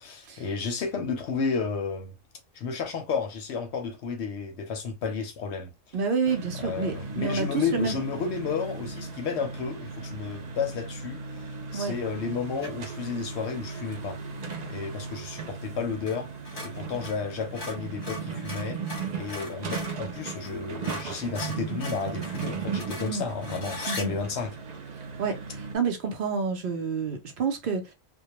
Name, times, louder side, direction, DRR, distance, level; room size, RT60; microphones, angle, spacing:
voice 1, 0.0-2.1 2.5-5.9 6.6-14.2 14.7-16.3 16.6-18.8 19.1-24.5, left 5 dB, 70° left, 0.8 m, -32 dB
voice 2, 5.9-8.0 11.7-11.9 23.0-23.3 23.9-24.2 25.2-27.9, right 5 dB, 55° right, 0.7 m, -29 dB
sound 1, 6.2-25.8, right 5 dB, 85° right, 0.3 m, -37 dB
sound 2, 12.6-12.9 16.0-16.2 16.4-20.0 20.4-20.5 20.8-24.1, left 2 dB, 35° left, 0.8 m, -39 dB
2.2 x 2.1 x 2.8 m
omnidirectional pair, 1.3 m